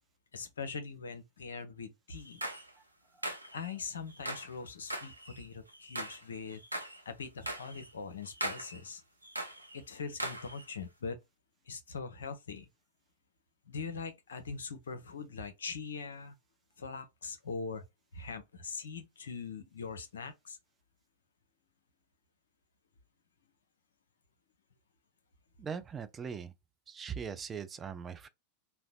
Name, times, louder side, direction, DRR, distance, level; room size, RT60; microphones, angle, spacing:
voice 1, 0.3-2.4 3.5-6.6 7.1-9.0 9.7-11.2 11.7-12.7 13.7-16.3 16.8-17.8 18.1-20.6, left 5 dB, 70° left, 0.5 m, -42 dB
sound 1, 2.1-2.7 3.2-3.7 4.1-4.5 4.9-6.2 6.5-7.0 7.4-7.9 8.2-8.8 9.2-9.8 10.2-10.6, right 1 dB, 85° right, 0.5 m, -40 dB
voice 2, 25.6-26.5 26.9-28.3, right 6 dB, 20° right, 0.3 m, -40 dB
2.8 x 2.0 x 2.3 m
figure-of-eight pair, 90°, 0 cm